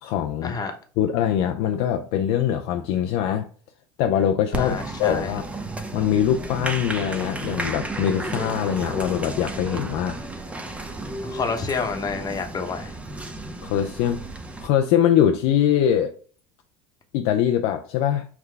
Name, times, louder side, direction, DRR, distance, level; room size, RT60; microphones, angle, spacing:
voice 1, 0.0-0.6 1.0-3.5 4.0-5.4 5.9-10.2 13.6-14.2 14.6-16.1 17.1-18.3, left 10 dB, 65° left, 0.5 m, -22 dB
Applause, 4.5-14.7, right 2 dB, 10° right, 0.7 m, -33 dB
voice 2, 4.6-5.3 11.2-13.0, left 5 dB, 30° left, 1.0 m, -28 dB
5.8 x 2.2 x 3.3 m
hypercardioid pair, 90°, 13 cm